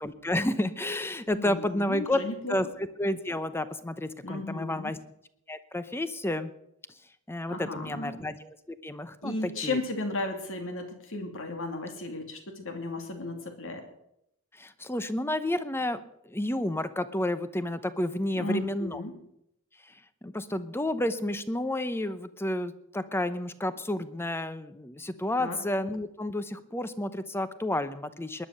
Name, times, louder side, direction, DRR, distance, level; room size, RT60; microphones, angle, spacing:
voice 1, 0.0-2.2 2.5-5.0 5.5-6.5 7.3-9.8 14.5-19.0 19.8-28.5, left 1 dB, 10° left, 13 dB, 0.8 m, -31 dB
voice 2, 1.3-2.5 4.2-4.9 7.5-8.1 9.2-13.8 18.3-19.1 25.4-25.6, left 2 dB, 60° left, 5 dB, 2.7 m, -34 dB
20.5 x 10.5 x 6.6 m, 0.79 s
head